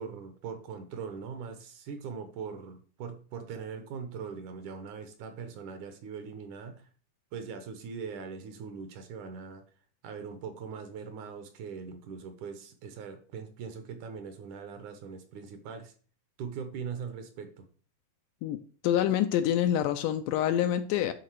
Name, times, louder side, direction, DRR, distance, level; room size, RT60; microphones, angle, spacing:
voice 1, 0.0-6.9 7.3-9.6 10.0-15.9 16.4-17.7, right 6 dB, 70° right, 2.2 m, -41 dB
voice 2, 18.8-21.1, left 11 dB, 80° left, 2.0 m, -26 dB
10.5 x 3.9 x 4.7 m
omnidirectional pair, 4.0 m